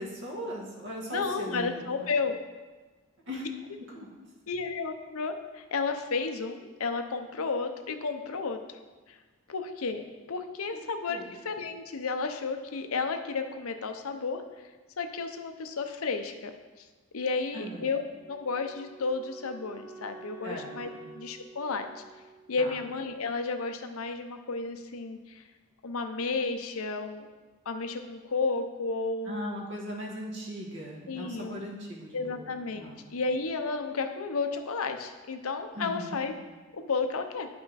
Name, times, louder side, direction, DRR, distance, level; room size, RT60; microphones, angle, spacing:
voice 1, 0.0-2.1 3.3-3.4 3.9-4.1 10.7-10.8 11.1-11.3 17.5-17.9 20.4-21.1 22.6-22.8 29.3-33.0 35.7-36.2, equal, 55° right, -2 dB, 1.8 m, -39 dB
voice 2, 1.1-2.4 4.5-8.6 9.1-9.2 9.5-10.0 10.3-11.2 11.4-14.4 15.0-16.5 16.8-16.9 17.1-18.0 18.3-20.9 21.1-22.0 22.5-25.4 25.8-27.3 27.7-29.4 31.1-31.6 32.1-36.3 36.7-37.5, left 4 dB, 80° left, 6 dB, 0.7 m, -32 dB
Wind instrument woodwind instrument, 18.1-23.2, right 3 dB, 10° right, 0.8 m, -49 dB
9.7 x 5.7 x 4.1 m, 1.3 s
head